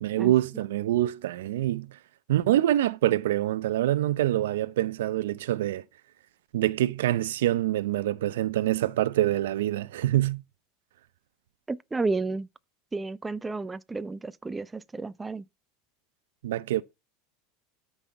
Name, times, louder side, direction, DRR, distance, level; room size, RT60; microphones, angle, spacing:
voice 1, 0.0-2.0 2.3-5.8 6.5-10.4 16.4-16.8, right 13 dB, 90° right, 0.6 m, -25 dB
voice 2, 11.7-12.5 12.9-15.4, right 3 dB, 10° right, 0.6 m, -32 dB
13.0 x 5.7 x 4.6 m
supercardioid pair, 130°, 0 cm